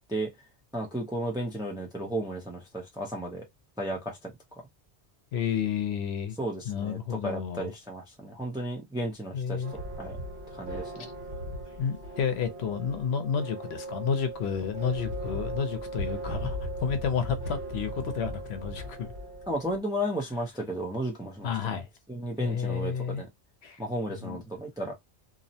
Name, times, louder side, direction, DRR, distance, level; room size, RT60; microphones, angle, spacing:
voice 1, 0.7-3.4 3.8-4.3 6.4-10.2 10.5-11.1 19.5-21.5 22.1-23.3 23.8-25.0, right 1 dB, 5° right, 0.3 m, -34 dB
voice 2, 5.3-6.4 6.6-7.7 9.3-9.7 11.8-19.1 21.4-21.9 22.4-23.2 23.6-23.8 24.1-24.4, left 7 dB, 75° left, 0.8 m, -31 dB
sound 1, 9.6-19.8, right 1 dB, 50° right, 1.3 m, -38 dB
2.6 x 2.0 x 2.7 m
omnidirectional pair, 1.1 m